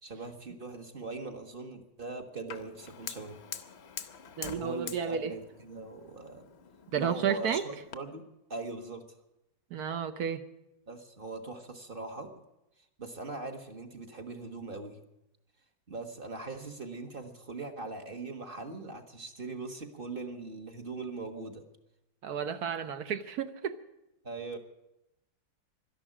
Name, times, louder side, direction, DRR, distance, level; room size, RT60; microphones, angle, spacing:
voice 1, 0.0-3.4 4.5-6.5 6.9-9.0 10.9-12.3 13.0-15.0 15.9-21.6 24.2-24.6, right 3 dB, 30° right, 5 dB, 1.4 m, -41 dB
Fire, 2.5-8.0, left 7 dB, 55° left, 0.7 m, -45 dB
voice 2, 4.4-5.3 6.9-7.6 9.7-10.4 22.2-23.8, right 7 dB, 65° right, 11 dB, 1.1 m, -32 dB
12.5 x 11.5 x 10.0 m, 0.91 s
omnidirectional pair, 2.1 m